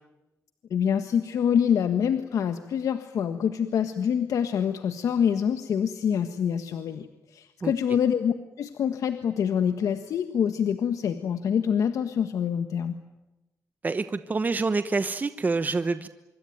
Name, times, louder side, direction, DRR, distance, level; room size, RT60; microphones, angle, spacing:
voice 1, 0.7-7.1 7.3-13.0, left 8 dB, 80° left, 8 dB, 1.5 m, -26 dB
voice 2, 13.8-16.1, right 3 dB, 30° right, 11 dB, 1.1 m, -27 dB
26.0 x 23.5 x 9.4 m, 1.0 s
cardioid pair, 95°, 6 cm